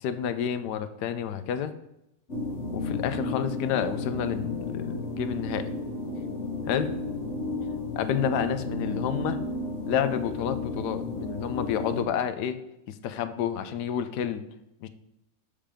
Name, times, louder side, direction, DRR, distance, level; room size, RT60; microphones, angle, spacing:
voice 1, 0.0-1.7 2.7-5.6 6.7-6.9 8.0-9.4 9.9-12.6 12.9-14.4 14.8-14.9, left 9 dB, 85° left, 11 dB, 1.2 m, -29 dB
sound 1, 2.3-12.0, left 2 dB, 45° left, 1.9 m, -33 dB
7.4 x 5.1 x 5.1 m, 0.87 s
omnidirectional pair, 1.7 m